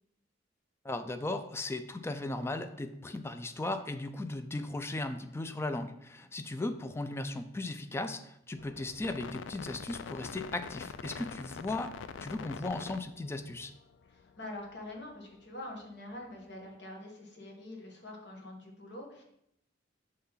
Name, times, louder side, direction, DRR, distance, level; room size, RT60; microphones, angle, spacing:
voice 1, 0.8-11.9 12.2-13.7, left 2 dB, 15° left, 8 dB, 0.4 m, -37 dB
sound 1, 8.6-15.2 15.4-15.5, left 6 dB, 90° left, 0.3 m, -45 dB
voice 2, 14.1-19.2, left 1 dB, 65° left, 0 dB, 1.4 m, -45 dB
5.7 x 3.2 x 5.6 m, 0.75 s
head